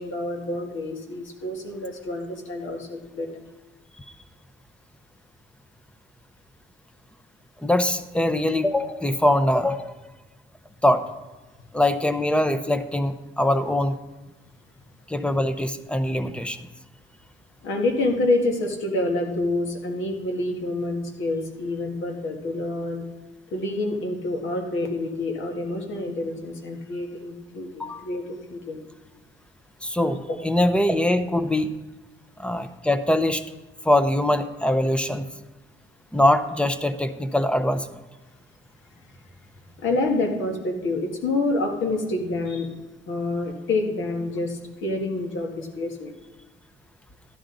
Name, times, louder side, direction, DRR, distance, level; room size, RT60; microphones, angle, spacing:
voice 1, 0.0-3.4 17.6-23.0 23.5-28.8 30.3-30.4 39.8-42.7 43.1-46.1, left 2 dB, 75° left, 2 dB, 1.8 m, -27 dB
voice 2, 7.6-9.9 10.8-11.1 11.7-14.0 15.1-16.6 27.8-28.0 29.8-31.7 32.4-33.4 33.8-35.3 36.1-37.9, left 1 dB, 5° left, 11 dB, 0.7 m, -22 dB
12.5 x 10.5 x 3.9 m, 1.2 s
cardioid pair, 90°, 20 cm